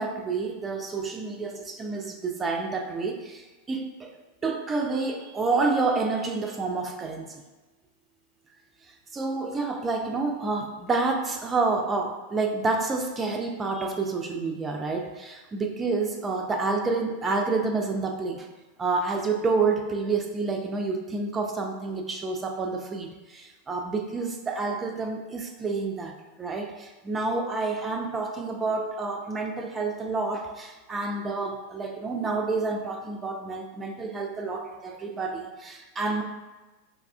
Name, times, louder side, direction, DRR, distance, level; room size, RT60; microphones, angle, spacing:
voice 1, 0.0-7.4 9.1-18.5 18.8-36.2, right 3 dB, 20° right, 3 dB, 0.4 m, -29 dB
5.2 x 2.3 x 2.3 m, 1.2 s
figure-of-eight pair, 90°, 0 cm